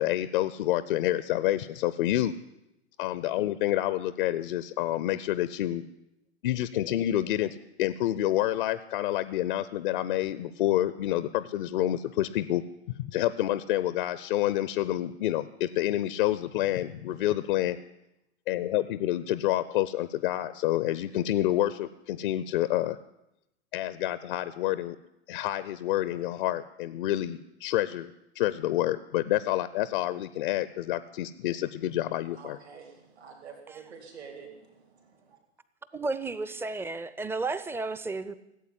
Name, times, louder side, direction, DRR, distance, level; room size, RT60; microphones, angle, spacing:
voice 1, 0.0-2.3 3.0-5.8 6.4-12.6 12.9-17.8 18.5-23.0 23.7-25.0 25.3-32.6, left 14 dB, 50° left, 15 dB, 0.7 m, -28 dB
voice 2, 32.3-35.4, right 6 dB, 70° right, 1 dB, 3.4 m, -48 dB
voice 3, 35.9-38.3, right 3 dB, 5° right, 14 dB, 0.6 m, -33 dB
16.0 x 8.4 x 10.0 m, 0.89 s
figure-of-eight pair, 90°, 33 cm